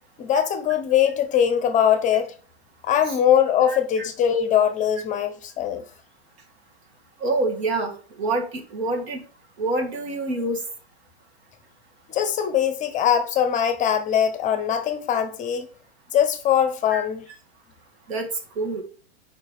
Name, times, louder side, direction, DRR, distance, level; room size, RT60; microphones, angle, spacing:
voice 1, 0.2-2.3 2.8-5.8 12.1-15.7 16.1-17.2, left 9 dB, 25° left, 0.7 m, -21 dB
voice 2, 3.7-4.0 7.2-7.9 8.2-8.4 8.7-9.2 9.6-10.6 16.9-17.1 18.1-18.3 18.6-18.8, right 2 dB, 70° right, 1.9 m, -26 dB
4.8 x 4.6 x 4.7 m
hypercardioid pair, 120°, 33 cm